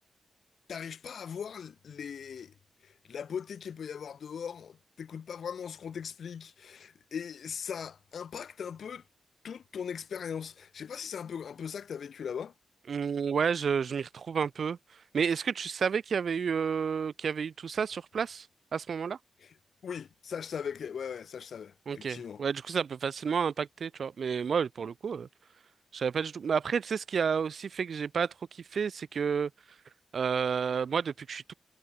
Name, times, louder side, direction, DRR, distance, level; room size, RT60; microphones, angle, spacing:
voice 1, 0.7-2.5 2.8-9.0 9.4-12.5 19.4-19.5 19.8-22.4, left 7 dB, 70° left, 1.2 m, -39 dB
voice 2, 12.9-14.8 15.1-18.5 18.7-19.2 21.9-25.3 25.9-29.5 30.1-31.5, right 6 dB, 60° right, 0.6 m, -30 dB
wide cardioid pair, 140°, 0 cm